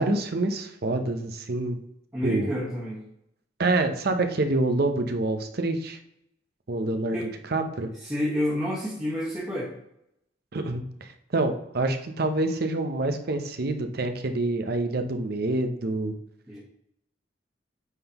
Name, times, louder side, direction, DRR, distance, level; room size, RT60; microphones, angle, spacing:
voice 1, 0.0-1.8 2.2-2.5 3.6-6.0 6.7-7.9 10.5-16.1, right 2 dB, 55° right, 7 dB, 0.7 m, -27 dB
voice 2, 2.1-3.0 7.1-7.3 8.0-9.7 16.5-16.6, equal, 15° right, -7 dB, 1.4 m, -29 dB
9.0 x 3.9 x 2.9 m, 0.77 s
head